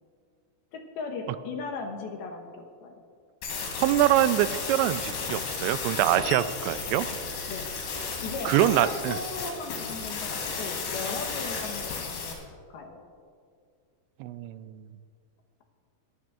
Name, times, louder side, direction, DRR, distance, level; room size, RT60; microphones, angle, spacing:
voice 1, 0.7-2.9 7.5-7.7 8.2-12.4 12.7-13.0, left 4 dB, 70° left, 3 dB, 2.7 m, -37 dB
sound 1, 3.4-12.3, left 5 dB, 90° left, 4.7 m, -34 dB
voice 2, 3.8-7.1 8.5-9.2 14.2-14.8, right 13 dB, 85° right, 13 dB, 2.8 m, -24 dB
22.5 x 15.0 x 2.4 m, 2.3 s
omnidirectional pair, 5.0 m